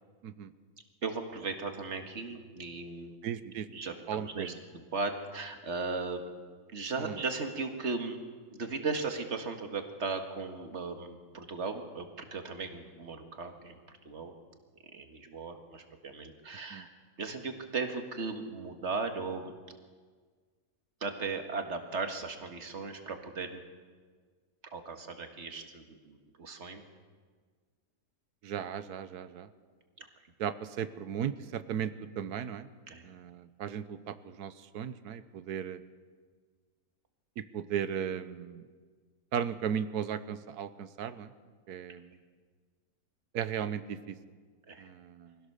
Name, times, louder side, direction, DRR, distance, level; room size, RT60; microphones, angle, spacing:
voice 1, 1.0-3.2 3.7-6.3 6.7-8.2 8.5-14.3 14.9-16.9 17.2-19.5 21.0-23.6 24.7-26.8 30.0-30.1 32.9-33.1 44.7-44.9, right 4 dB, 45° right, 5 dB, 2.0 m, -37 dB
voice 2, 3.2-3.7 4.1-4.6 6.9-7.2 16.7-16.9 28.4-29.5 30.4-32.7 33.0-35.8 37.4-38.6 39.3-41.3 41.7-42.1 43.3-44.2 44.8-45.4, right 8 dB, 90° right, 13 dB, 1.4 m, -36 dB
23.5 x 16.5 x 6.8 m, 1.6 s
omnidirectional pair, 1.6 m